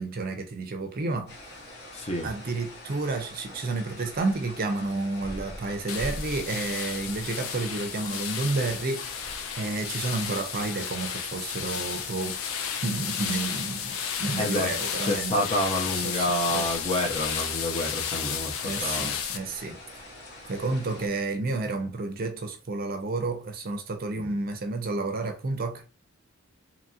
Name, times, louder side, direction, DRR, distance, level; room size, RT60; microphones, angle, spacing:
voice 1, 0.0-1.3 2.2-15.5 16.0-16.7 18.6-19.8 20.5-25.8, right 3 dB, 45° right, 0.5 m, -31 dB
sound 1, 1.3-21.1, left 1 dB, 50° left, 1.1 m, -44 dB
voice 2, 1.9-2.3 14.4-14.7 15.0-19.2 24.2-24.3, left 1 dB, 30° left, 0.6 m, -29 dB
sound 2, 5.9-19.4, left 8 dB, 70° left, 0.4 m, -33 dB
2.9 x 2.8 x 2.3 m
head